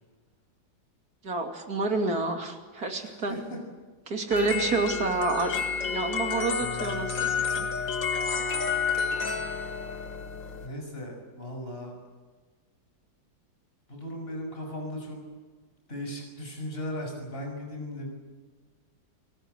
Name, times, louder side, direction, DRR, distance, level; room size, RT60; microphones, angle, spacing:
voice 1, 1.2-3.4 4.1-5.6 5.9-7.7, right 3 dB, 55° right, 4 dB, 3.2 m, -29 dB
voice 2, 3.0-3.6 10.6-11.9 13.9-15.2 15.9-18.1, left 1 dB, 30° left, 1 dB, 6.4 m, -37 dB
sound 1, 4.3-10.7, left 6 dB, 80° left, 2.5 m, -30 dB
28.5 x 18.5 x 8.0 m, 1.4 s
omnidirectional pair, 2.0 m